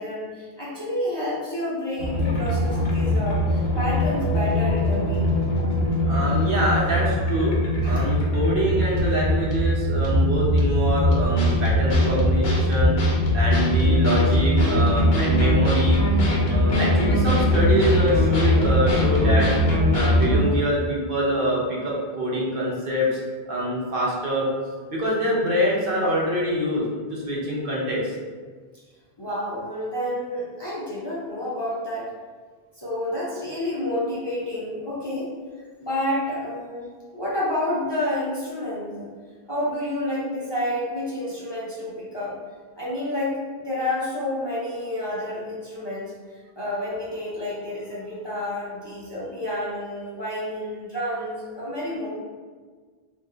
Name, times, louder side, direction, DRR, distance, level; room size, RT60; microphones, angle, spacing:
voice 1, 0.0-5.3 7.8-7.9 16.3-16.5 29.2-32.1 32.8-35.3 35.8-36.8 37.1-39.1 39.5-42.4 42.8-46.1 46.6-52.1, left 1 dB, 30° left, -9 dB, 0.6 m, -29 dB
sound 1, 2.0-20.4, left 1 dB, 75° left, 0.9 m, -21 dB
voice 2, 6.1-7.5 7.8-13.0 13.3-16.0 16.5-19.5 19.9-23.2 23.5-24.5 24.9-26.8 27.1-28.1, equal, 60° right, -5 dB, 0.9 m, -25 dB
2.7 x 2.2 x 3.8 m, 1.5 s
omnidirectional pair, 1.1 m